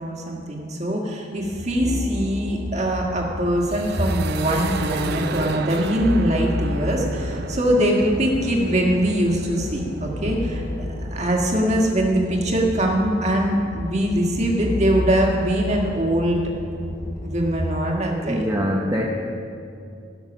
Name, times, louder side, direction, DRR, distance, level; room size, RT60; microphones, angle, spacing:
voice 1, 0.0-10.6 11.1-16.4 17.2-18.4, right 1 dB, 35° right, 0 dB, 1.6 m, -22 dB
sound 1, 1.4-17.7, left 1 dB, 15° left, 0.3 m, -32 dB
sound 2, 3.6-11.4, right 4 dB, 55° right, 0.5 m, -34 dB
voice 2, 18.2-19.1, equal, 15° right, -3 dB, 0.7 m, -23 dB
17.0 x 6.2 x 6.1 m, 2.5 s
head